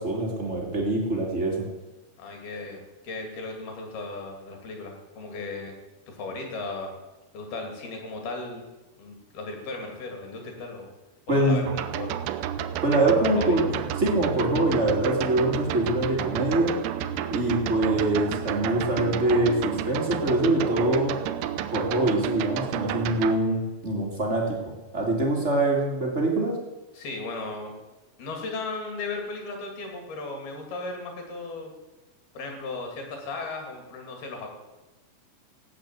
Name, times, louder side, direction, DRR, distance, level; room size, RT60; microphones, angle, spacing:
voice 1, 0.0-1.7 11.3-11.6 12.8-16.7 17.3-21.1 21.7-24.6 24.9-26.6, right 1 dB, 30° right, -1 dB, 1.2 m, -24 dB
voice 2, 2.2-5.8 6.1-6.9 7.3-8.6 9.0-10.9 11.3-12.2 13.2-13.6 26.9-27.7 28.2-31.7 32.3-34.5, left 3 dB, 55° left, 3 dB, 4.2 m, -36 dB
sound 1, 11.7-23.3, right 10 dB, 80° right, 2.5 m, -31 dB
16.5 x 9.1 x 7.6 m, 1.1 s
omnidirectional pair, 5.8 m